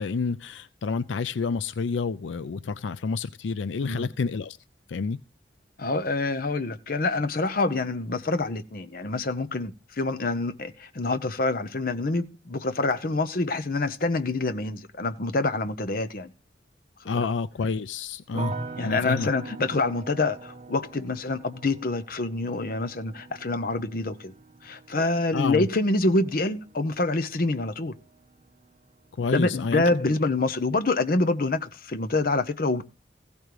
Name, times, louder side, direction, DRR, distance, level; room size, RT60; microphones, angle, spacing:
voice 1, 0.0-4.6 4.9-5.2 17.1-18.5 18.8-19.3 25.3-25.7 29.2-29.8, left 4 dB, 85° left, 0.4 m, -29 dB
voice 2, 5.8-16.3 17.1-17.3 18.8-24.3 24.6-27.9 29.2-32.8, left 2 dB, 50° left, 0.8 m, -26 dB
sound 1, 18.3-29.4 29.7-30.4, right 3 dB, 35° right, 0.9 m, -42 dB
15.5 x 5.2 x 4.7 m
head